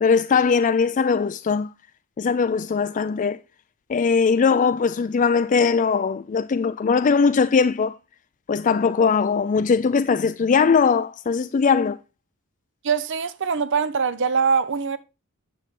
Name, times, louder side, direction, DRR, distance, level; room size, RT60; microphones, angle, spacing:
voice 1, 0.0-1.7 2.2-3.4 3.9-8.0 8.5-12.0, left 5 dB, 35° left, 0.3 m, -20 dB
voice 2, 12.8-15.0, right 5 dB, 55° right, 0.7 m, -23 dB
9.1 x 7.1 x 3.6 m
head